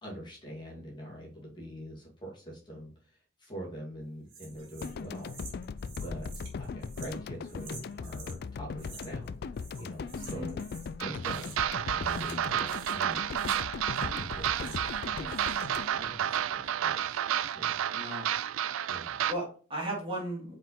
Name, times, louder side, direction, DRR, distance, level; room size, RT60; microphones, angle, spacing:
voice 1, 0.0-5.3 6.0-10.6 11.0-11.5 11.9-13.6 13.9-17.8 18.9-19.2, equal, 25° left, -4 dB, 2.4 m, -44 dB
sound 1, 4.3-8.4 8.8-9.3 9.5-10.9 11.2-11.8 12.0-15.0 15.3-15.8, right 4 dB, 65° right, 3.2 m, -50 dB
sound 2, 4.8-17.0, left 5 dB, 50° left, 0.3 m, -39 dB
voice 2, 10.2-10.5 17.9-18.3 18.9-20.5, right 1 dB, 25° right, -3 dB, 2.5 m, -36 dB
sound 3, 11.0-19.3, right 10 dB, 85° right, 0.4 m, -31 dB
5.6 x 5.0 x 4.3 m, 0.41 s
head